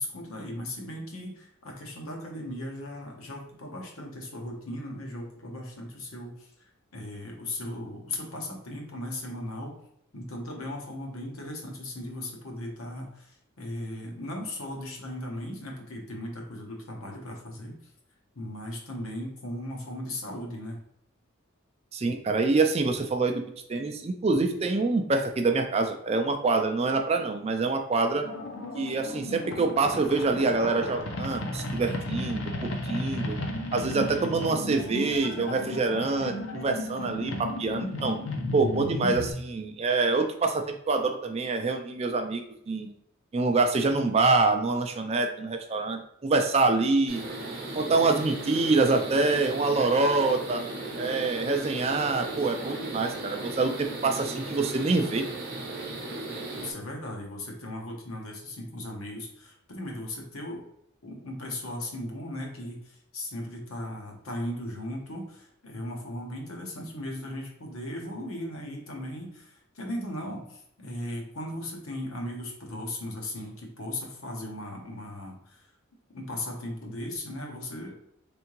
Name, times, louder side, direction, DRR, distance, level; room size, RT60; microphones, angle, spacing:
voice 1, 0.0-6.5 6.9-9.8 10.1-17.9 18.3-20.8 56.6-60.7 61.0-75.7 76.1-78.0, left 1 dB, 75° left, 0 dB, 1.0 m, -37 dB
voice 2, 21.9-23.4 23.7-28.2 28.8-33.4 33.7-38.2 38.5-42.9 43.3-47.2 47.7-50.6 51.0-55.3, right 3 dB, 30° right, 5 dB, 0.3 m, -26 dB
sound 1, 28.2-39.3, left 1 dB, 60° left, 0.6 m, -34 dB
sound 2, 47.1-56.7, right 2 dB, 45° right, 0.7 m, -36 dB
3.6 x 3.4 x 3.0 m, 0.74 s
head